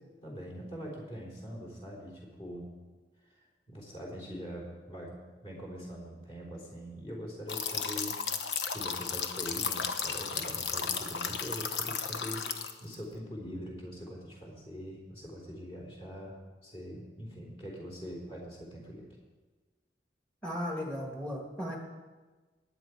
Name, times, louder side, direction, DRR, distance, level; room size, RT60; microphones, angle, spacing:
voice 1, 0.2-2.7 3.3-3.4 3.7-8.1 8.7-12.5 12.8-19.1, equal, 35° left, -2 dB, 3.8 m, -43 dB
sound 1, 7.5-13.0, left 6 dB, 90° left, 1.0 m, -34 dB
voice 2, 20.4-21.8, equal, 5° left, 0 dB, 1.7 m, -36 dB
18.5 x 9.6 x 4.7 m, 1.3 s
head